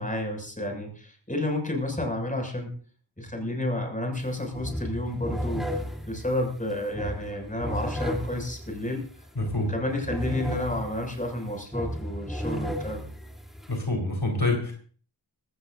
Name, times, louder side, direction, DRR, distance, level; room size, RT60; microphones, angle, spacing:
voice 1, 0.0-2.7 3.2-5.7 6.1-9.0 9.6-13.1, left 1 dB, 20° left, 3 dB, 6.4 m, -31 dB
sound 1, 4.1-4.3 4.5-13.8, equal, ahead, 3.3 m, -34 dB
voice 2, 9.4-9.7 13.7-14.7, left 2 dB, 65° left, 2 dB, 4.5 m, -26 dB
20.0 x 17.0 x 2.6 m, 0.42 s
wide cardioid pair, 40°, 44 cm